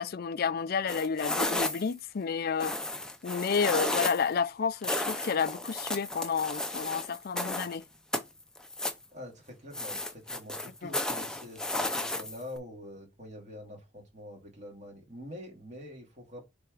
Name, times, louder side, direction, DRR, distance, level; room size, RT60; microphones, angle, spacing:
voice 1, 0.0-2.8 3.2-7.8 10.8-10.9, left 6 dB, 50° left, 0.4 m, -30 dB
sound 1, 0.9-2.0 2.6-4.3 4.8-7.8 8.1-9.0 9.7-12.6, left 1 dB, 5° left, 0.6 m, -33 dB
voice 2, 9.1-16.4, left 1 dB, 35° right, 2.6 m, -45 dB
6.6 x 3.5 x 4.7 m
head